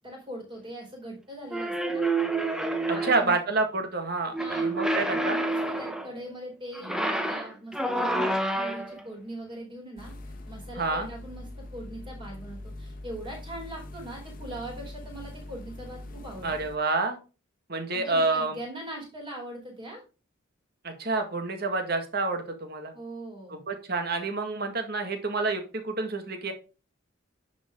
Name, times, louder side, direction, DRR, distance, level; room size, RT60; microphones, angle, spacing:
voice 1, 0.0-2.1 2.9-3.4 4.4-4.7 5.1-16.5 17.9-20.0 22.9-23.6, right 1 dB, 25° right, -1 dB, 4.4 m, -41 dB
sound 1, 1.5-3.4 4.3-6.1 6.7-9.0, right 2 dB, 5° right, 0.9 m, -28 dB
voice 2, 3.0-5.4 10.8-11.1 16.4-17.2 17.7-18.6 20.8-22.9 23.5-26.5, right 3 dB, 50° right, 5 dB, 1.8 m, -28 dB
sound 2, 10.0-16.8, left 1 dB, 45° left, 1.2 m, -42 dB
10.0 x 5.2 x 3.7 m, 0.32 s
head